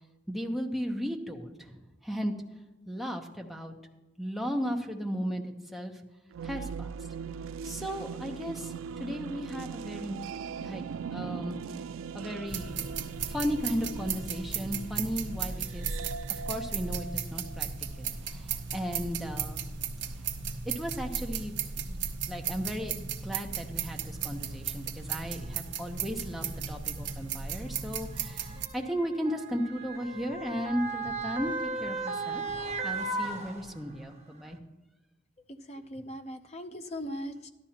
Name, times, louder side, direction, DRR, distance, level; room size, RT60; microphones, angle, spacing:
voice 1, 0.3-2.3 2.9-3.7 4.2-6.0 6.4-6.9 7.6-8.7 9.0-10.2 10.6-11.6 12.1-16.0 16.3-19.6 20.6-32.4 32.8-34.6, equal, ahead, 1 dB, 0.9 m, -35 dB
sound 1, 6.3-18.1, right 6 dB, 85° right, 0.3 m, -40 dB
sound 2, 12.5-28.7, right 6 dB, 60° right, 0.8 m, -36 dB
Motor vehicle (road) / Siren, 24.1-24.2 25.2-25.4 26.5-34.1 34.5-34.6, right 3 dB, 35° right, 1.2 m, -36 dB
voice 2, 35.5-37.5, equal, 35° left, 7 dB, 0.7 m, -39 dB
13.5 x 11.5 x 2.9 m, 1.1 s
head